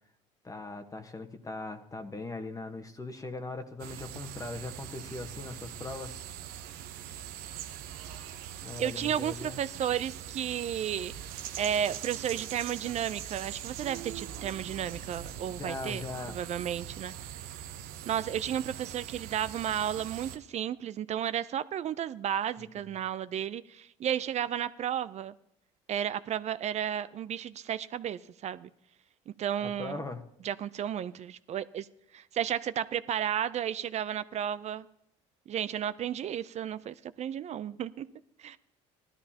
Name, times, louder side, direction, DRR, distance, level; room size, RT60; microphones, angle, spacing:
voice 1, 0.4-6.2 8.6-9.6 15.5-16.4 22.7-22.8 29.6-30.2, left 3 dB, 20° left, 1.2 m, -40 dB
sound 1, 3.8-20.4, right 10 dB, 75° right, 0.9 m, -42 dB
voice 2, 8.8-16.0 16.3-17.1 18.0-25.3 25.9-28.7 29.3-30.0 30.4-31.9 32.1-34.9 35.5-38.1 38.4-38.6, right 9 dB, 45° right, 0.5 m, -33 dB
17.0 x 12.5 x 2.9 m
supercardioid pair, 75°, 16 cm